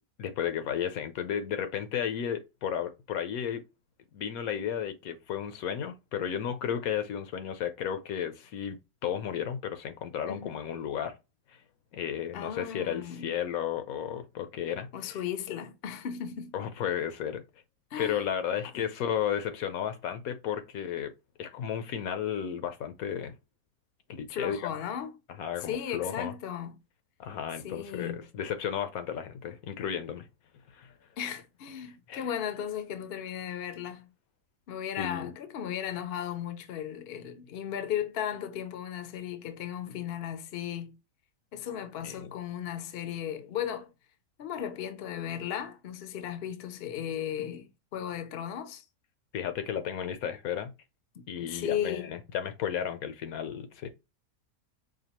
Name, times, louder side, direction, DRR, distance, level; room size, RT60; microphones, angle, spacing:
voice 1, 0.2-3.6 4.1-11.1 11.9-15.2 16.5-17.4 18.0-21.1 21.4-23.3 24.1-24.6 25.4-26.3 27.2-30.3 30.7-30.9 32.1-32.3 35.0-35.3 42.0-42.3 49.3-50.7 51.3-53.9, left 9 dB, 75° left, 1.1 m, -33 dB
voice 2, 10.3-10.6 12.3-13.3 14.9-16.5 17.9-18.2 24.3-25.1 25.6-26.7 27.6-28.2 31.2-34.1 34.7-40.9 41.5-43.9 44.4-48.9 51.2-52.1, left 9 dB, 55° left, 0.7 m, -36 dB
5.0 x 2.4 x 2.9 m
omnidirectional pair, 1.6 m